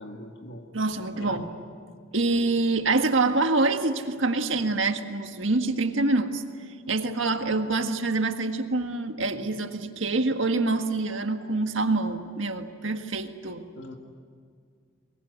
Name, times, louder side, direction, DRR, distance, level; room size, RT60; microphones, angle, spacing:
voice 1, 0.0-0.7 1.2-1.5 13.7-14.0, left 1 dB, 60° left, 4 dB, 1.9 m, -41 dB
voice 2, 0.7-1.5 2.1-6.4 6.9-13.6, right 3 dB, 70° right, 6 dB, 1.7 m, -26 dB
23.5 x 22.0 x 9.5 m, 2.1 s
head